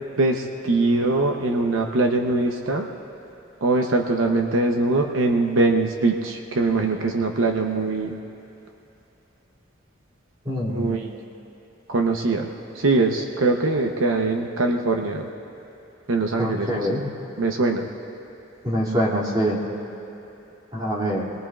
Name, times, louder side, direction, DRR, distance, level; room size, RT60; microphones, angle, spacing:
voice 1, 0.2-2.9 3.6-8.2 10.7-11.1 11.9-12.5 12.7-15.3 16.1-17.0 17.4-17.9, right 2 dB, 80° right, 2 dB, 0.8 m, -22 dB
voice 2, 10.4-11.0 16.4-17.1 18.6-19.6 20.7-21.3, equal, 20° right, -5 dB, 2.6 m, -24 dB
26.0 x 22.0 x 2.4 m, 2.9 s
head